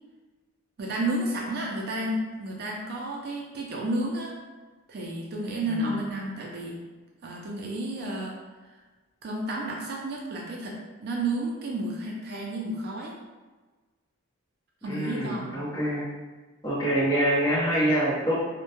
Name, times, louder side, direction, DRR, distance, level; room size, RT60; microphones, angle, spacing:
voice 1, 0.8-4.3 4.9-6.8 7.2-8.4 9.2-13.2 14.8-15.5, right 1 dB, 45° right, -2 dB, 0.3 m, -31 dB
voice 2, 14.8-16.0 16.6-18.3, right 1 dB, 20° left, -9 dB, 0.7 m, -25 dB
2.2 x 2.1 x 2.8 m, 1.3 s
head